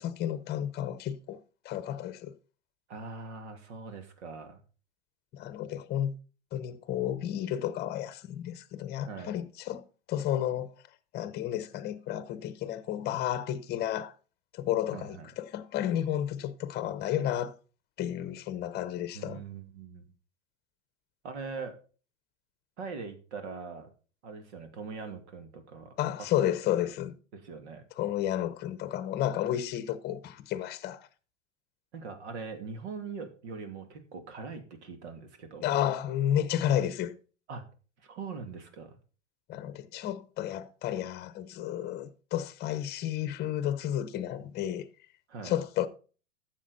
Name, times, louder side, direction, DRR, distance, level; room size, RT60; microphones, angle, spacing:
voice 1, 0.0-1.4 1.6-2.3 5.3-6.1 6.5-10.7 11.1-14.1 14.5-17.5 18.0-19.4 26.0-27.1 28.0-31.1 35.6-37.1 39.5-44.9 45.4-45.9, left 11 dB, 25° left, 0.9 m, -32 dB
voice 2, 2.9-4.6 9.0-9.4 14.9-15.3 19.1-20.0 21.2-21.8 22.8-23.9 24.2-25.9 26.8-26.9 27.3-27.8 31.9-35.7 37.5-37.6 38.0-39.0 45.3-45.5, right 4 dB, 65° right, 2.6 m, -42 dB
12.0 x 7.5 x 4.1 m
hypercardioid pair, 115°, 37 cm